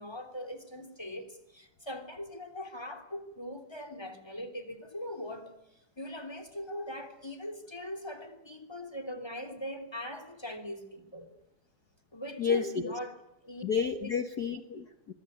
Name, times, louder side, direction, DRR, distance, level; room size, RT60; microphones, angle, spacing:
voice 1, 0.0-5.5 6.0-11.3 12.1-13.2 13.4-13.6 14.0-14.2, equal, 10° left, 2.9 m, -40 dB
voice 2, 12.4-12.9 13.6-15.1, left 6 dB, 80° left, 0.8 m, -31 dB
24.5 x 23.0 x 9.5 m
omnidirectional pair, 3.7 m